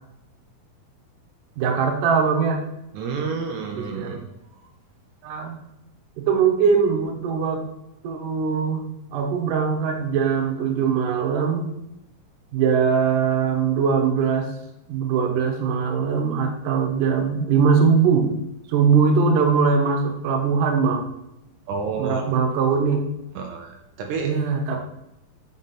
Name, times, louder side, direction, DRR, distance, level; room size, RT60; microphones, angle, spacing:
voice 1, 1.6-2.6 3.7-4.1 5.2-5.5 6.2-7.6 8.0-8.8 9.1-11.7 12.5-14.5 14.9-18.3 18.7-21.1 22.0-23.0 24.2-24.8, right 6 dB, 70° right, 2 dB, 2.3 m, -21 dB
voice 2, 2.9-4.2 4.6-4.7 21.7-22.2 23.3-24.3, right 5 dB, 85° right, 2 dB, 1.7 m, -30 dB
6.1 x 5.1 x 4.2 m, 0.87 s
omnidirectional pair, 4.3 m